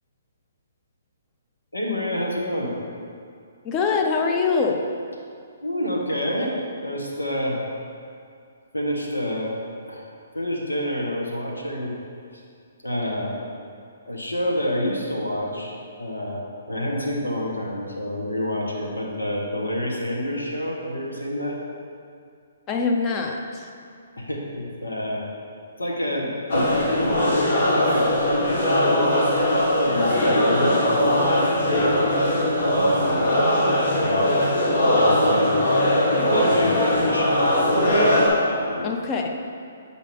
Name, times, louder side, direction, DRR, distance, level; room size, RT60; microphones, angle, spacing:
voice 1, 1.7-2.7 5.6-6.5 6.8-7.6 8.7-9.5 9.8-10.0 10.3-11.9 12.8-13.4 14.1-21.6 24.2-25.2 25.8-26.9 27.7-29.3 29.8-32.0 32.7-33.3 33.8-34.5 34.9-35.8 36.3-37.5 38.4-38.9, left 1 dB, 90° left, -2 dB, 1.3 m, -28 dB
voice 2, 3.6-4.8 22.7-23.7 38.8-39.4, left 4 dB, 25° left, 2 dB, 0.7 m, -23 dB
sound 1, 26.5-38.3, left 1 dB, 60° left, 1.6 m, -20 dB
8.3 x 4.8 x 3.4 m, 2.3 s
figure-of-eight pair, 135°, 0 cm